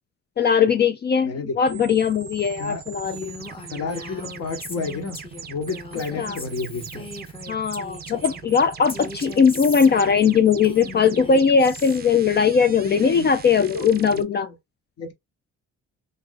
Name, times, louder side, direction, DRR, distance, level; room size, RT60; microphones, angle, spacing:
voice 1, 0.4-3.3 6.2-6.4 7.5-14.5, left 6 dB, 35° left, 0.4 m, -19 dB
voice 2, 1.2-1.9 2.6-2.8 3.7-5.2 5.5-7.1 12.8-13.2 13.6-14.5 15.0-15.1, left 4 dB, 55° left, 1.0 m, -31 dB
sound 1, 1.7-14.2, right 7 dB, 35° right, 0.5 m, -40 dB
Female speech woman speaking, 3.0-8.4 8.9-12.0, left 3 dB, 20° left, 0.8 m, -38 dB
2.6 x 2.6 x 3.7 m
cardioid pair, 90°, 30 cm